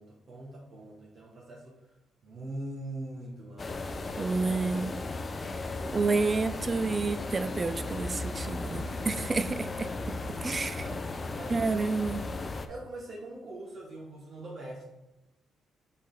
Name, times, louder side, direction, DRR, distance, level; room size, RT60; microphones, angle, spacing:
voice 1, 0.0-2.0 2.2-4.4 8.4-9.3 9.6-10.2 10.8-11.7 12.5-14.8, right 1 dB, 55° right, -4 dB, 1.5 m, -43 dB
sound 1, 3.6-12.7, left 3 dB, 30° left, 0.5 m, -36 dB
voice 2, 4.2-5.0 5.9-9.9 10.4-10.8 11.5-12.2, right 3 dB, 30° right, 13 dB, 0.4 m, -29 dB
6.1 x 4.2 x 4.0 m, 0.99 s
cardioid pair, 90°, 0 cm